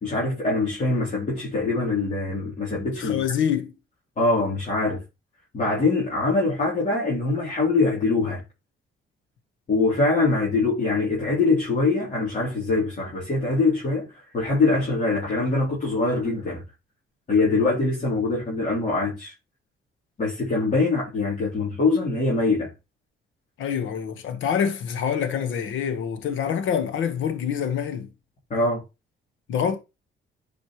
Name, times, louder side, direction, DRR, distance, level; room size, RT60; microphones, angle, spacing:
voice 1, 0.0-3.2 4.2-5.0 5.5-8.4 9.7-16.6 17.3-19.3 20.2-22.7 28.5-28.8, left 3 dB, 40° left, 3.4 m, -23 dB
voice 2, 3.0-3.7 23.6-28.1 29.5-29.8, left 8 dB, 80° left, 1.5 m, -26 dB
10.5 x 5.2 x 3.2 m
cardioid pair, 90°, 20 cm